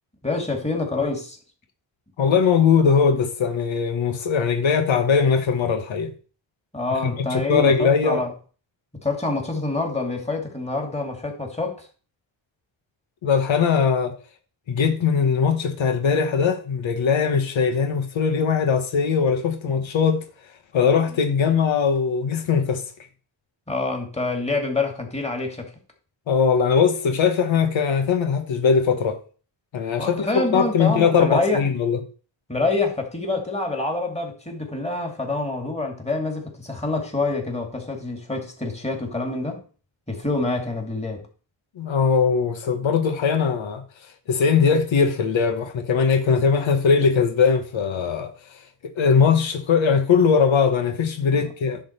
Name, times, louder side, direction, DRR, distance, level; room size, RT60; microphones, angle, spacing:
voice 1, 0.2-1.4 6.7-8.3 8.9-11.9 23.7-25.7 30.0-31.6 32.5-39.6 40.1-41.3 51.3-51.4, left 3 dB, 15° left, 2.5 m, -26 dB
voice 2, 2.2-6.1 6.9-8.2 13.2-14.2 14.7-20.2 20.7-22.8 26.3-29.2 29.7-32.0 41.8-43.8 44.3-48.3 48.8-51.8, left 6 dB, 90° left, 1.2 m, -20 dB
10.5 x 4.0 x 6.6 m
cardioid pair, 90°, 45 cm